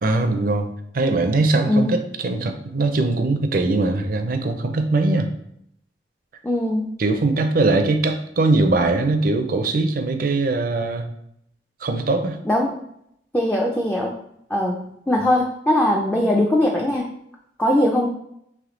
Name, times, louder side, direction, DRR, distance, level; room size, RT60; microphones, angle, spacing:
voice 1, 0.0-5.3 7.0-11.0 11.8-12.4, right 2 dB, 50° right, 6 dB, 0.5 m, -21 dB
voice 2, 6.4-6.9 12.5-12.8 13.3-14.1 14.5-14.8 15.1-17.1 17.6-18.1, left 1 dB, 10° left, -1 dB, 0.3 m, -20 dB
3.4 x 3.1 x 3.7 m, 0.75 s
head